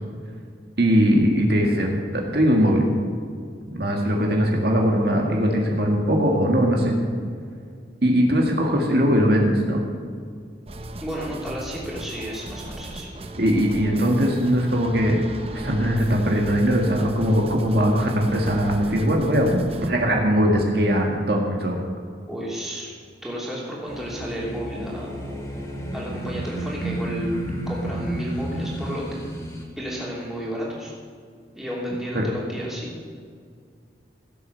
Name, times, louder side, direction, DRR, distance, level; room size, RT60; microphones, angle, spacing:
voice 1, 0.8-2.9 3.7-7.0 8.0-9.8 13.4-15.2 15.5-21.8 32.1-32.3, equal, 60° right, 0 dB, 1.8 m, -20 dB
sound 1, 10.7-19.9, right 1 dB, 30° right, 0.8 m, -38 dB
voice 2, 11.0-13.1 22.3-22.9 23.2-25.1 25.9-29.2 29.8-30.9 31.5-32.9, equal, ahead, -5 dB, 3.0 m, -32 dB
sound 2, 23.8-29.6, right 1 dB, 15° left, 2.1 m, -31 dB
16.5 x 7.8 x 6.6 m, 2.1 s
head